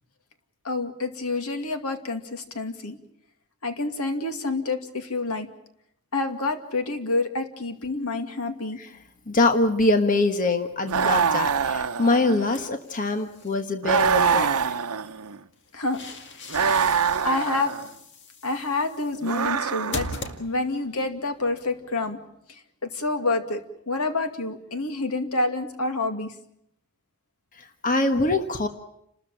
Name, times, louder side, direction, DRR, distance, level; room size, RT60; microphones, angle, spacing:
voice 1, 0.6-3.0 3.6-5.5 6.1-8.8 15.7-16.0 16.5-16.6 17.2-17.8 18.4-20.1 20.4-22.2 22.5-26.3, left 2 dB, 85° left, 7 dB, 2.4 m, -28 dB
voice 2, 9.3-14.7 27.6-28.7, left 2 dB, 35° left, 7 dB, 1.4 m, -24 dB
sound 1, 10.9-12.7 13.8-15.4 16.5-17.9 19.2-20.3, right 6 dB, 80° right, 0.9 m, -24 dB
sound 2, 12.5-13.6 15.5-20.9, left 2 dB, 50° left, 2.0 m, -40 dB
30.0 x 13.5 x 8.9 m, 0.77 s
head